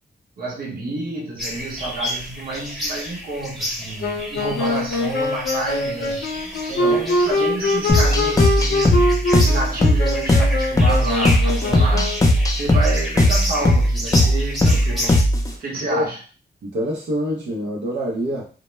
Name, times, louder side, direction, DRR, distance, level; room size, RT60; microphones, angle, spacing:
voice 1, 0.4-6.3 6.8-12.1 12.5-16.2, right 2 dB, 60° right, -2 dB, 0.8 m, -29 dB
sound 1, 1.4-15.2, equal, ahead, 0.8 m, -31 dB
Wind instrument woodwind instrument, 4.0-12.4, left 2 dB, 80° left, 0.5 m, -23 dB
voice 2, 6.7-7.0 15.9-16.1 16.6-18.5, equal, 90° right, -2 dB, 0.6 m, -26 dB
sound 2, 7.9-15.5, left 1 dB, 20° left, 0.4 m, -17 dB
2.1 x 2.1 x 3.0 m, 0.36 s
wide cardioid pair, 135°, 17 cm